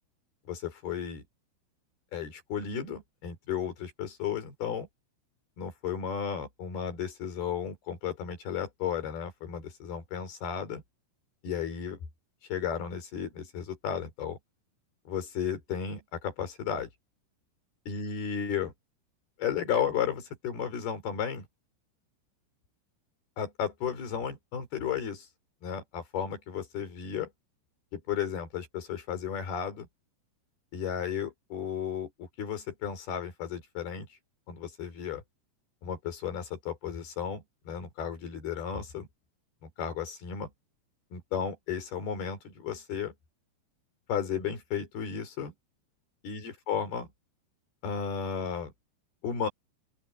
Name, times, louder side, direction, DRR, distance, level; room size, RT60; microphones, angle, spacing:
voice 1, 0.5-1.2 2.1-4.9 5.6-10.8 11.4-12.0 12.5-14.4 15.1-16.9 17.9-18.7 19.4-21.5 23.4-25.3 25.6-27.3 27.9-29.9 30.7-34.2 34.5-35.2 35.8-39.1 39.8-40.5 41.1-43.1 44.1-45.5 46.2-47.1 47.8-48.7 49.2-49.5, left 8 dB, 50° left, 6.0 m, -34 dB
open air
omnidirectional pair, 6.0 m